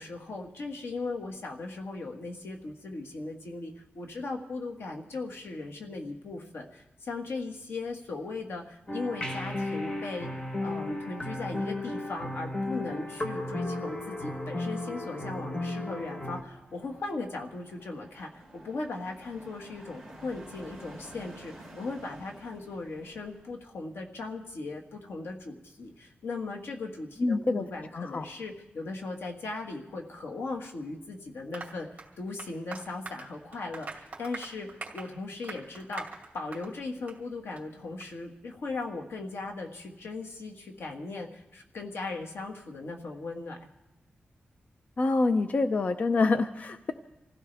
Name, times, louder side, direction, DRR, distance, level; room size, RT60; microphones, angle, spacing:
voice 1, 0.0-10.3 10.6-36.1 36.3-43.7, left 3 dB, 85° left, 2 dB, 1.8 m, -38 dB
sound 1, 8.9-16.4, left 2 dB, 25° left, 1.1 m, -34 dB
sound 2, 16.2-23.5, right 1 dB, 5° left, 3.3 m, -51 dB
voice 2, 27.2-27.6 27.9-28.2 45.0-46.9, left 3 dB, 40° left, 9 dB, 0.5 m, -26 dB
Applause, 31.5-36.8 37.1-37.2 37.6-37.7 38.0-38.1, right 4 dB, 35° right, 2.4 m, -44 dB
26.0 x 15.5 x 3.4 m, 0.95 s
wide cardioid pair, 165°, 4 cm